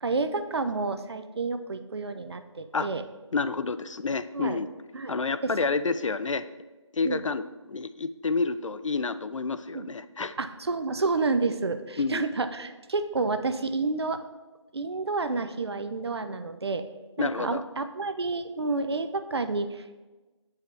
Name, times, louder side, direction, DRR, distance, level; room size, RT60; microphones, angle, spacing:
voice 1, 0.0-3.0 4.3-4.6 4.9-5.1 5.4-5.5 7.0-7.2 9.7-9.9 10.4-14.2 14.7-16.8 17.2-20.1, right 3 dB, 55° right, 9 dB, 0.5 m, -30 dB
voice 2, 3.3-4.7 5.1-6.4 6.9-10.3 12.0-12.3 17.2-17.6, left 4 dB, 80° left, 13 dB, 0.4 m, -29 dB
8.0 x 4.7 x 3.1 m, 1.2 s
figure-of-eight pair, 160°, 16 cm